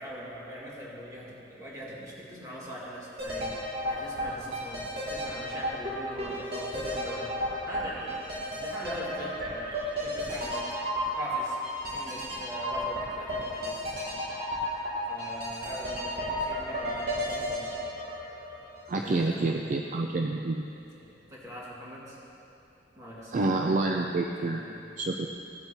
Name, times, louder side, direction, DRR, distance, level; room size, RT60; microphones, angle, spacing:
voice 1, 0.0-10.8 11.0-11.6 11.9-14.1 14.8-17.8 19.0-19.7 20.9-22.2 23.0-24.1 24.3-24.9, equal, 20° right, -7 dB, 2.1 m, -42 dB
sound 1, 3.2-19.1 19.4-19.5, equal, 60° right, 2.2 m, -33 dB
voice 2, 18.9-20.6 23.3-24.6 25.0-25.3, right 2 dB, 45° right, 2 dB, 0.4 m, -28 dB
15.5 x 7.9 x 2.8 m, 2.7 s
head